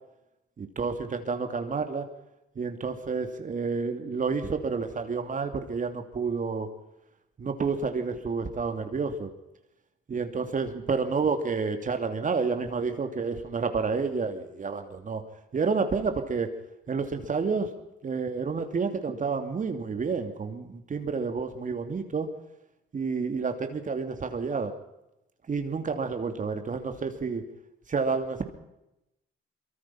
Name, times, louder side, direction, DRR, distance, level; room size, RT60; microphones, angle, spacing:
voice 1, 0.6-2.1 2.6-6.7 7.4-9.3 10.1-15.2 15.5-16.5 16.9-17.7 18.0-22.3 22.9-24.7 25.5-27.4 27.9-28.4, right 5 dB, 40° right, 7 dB, 2.8 m, -29 dB
24.0 x 23.0 x 5.8 m, 0.90 s
cardioid pair, 90°, 20 cm